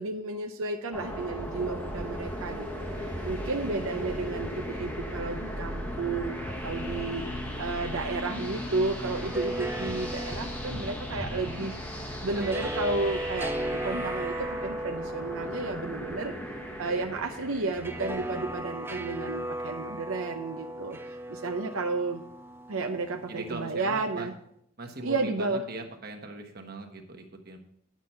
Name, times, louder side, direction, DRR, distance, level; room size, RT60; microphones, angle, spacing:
voice 1, 0.0-7.2 7.6-11.8 12.2-13.5 13.8-16.3 16.8-22.2 22.7-24.3 25.0-25.6, right 3 dB, 75° right, 4 dB, 0.7 m, -32 dB
sound 1, 0.9-18.5, equal, 10° left, 1.0 m, -37 dB
sound 2, 8.9-24.1, right 1 dB, 10° right, 0.4 m, -37 dB
voice 2, 11.3-11.7 23.3-24.3 24.8-27.6, right 2 dB, 45° right, 4 dB, 1.2 m, -40 dB
10.5 x 6.1 x 5.5 m, 0.69 s
head